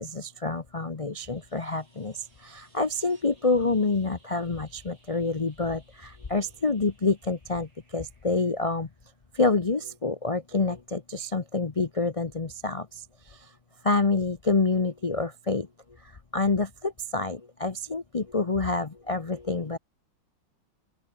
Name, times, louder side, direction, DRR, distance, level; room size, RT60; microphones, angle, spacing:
voice 1, 0.0-8.9 9.3-13.5 13.8-15.7 16.0-19.8, left 3 dB, 55° left, 0.3 m, -27 dB
sound 1, 1.2-9.9 12.2-12.3, right 2 dB, 80° right, 7.8 m, -64 dB
open air
omnidirectional pair, 2.1 m